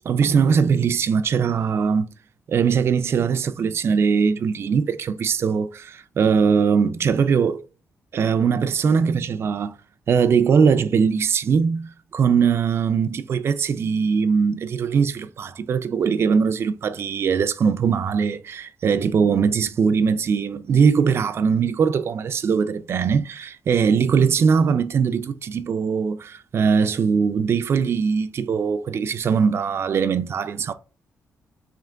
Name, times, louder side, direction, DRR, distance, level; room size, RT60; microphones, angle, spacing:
voice 1, 0.1-2.1 2.5-7.7 8.1-9.7 10.1-30.7, right 6 dB, 50° right, 0.3 m, -21 dB
3.3 x 2.8 x 3.7 m
cardioid pair, 115°, 6 cm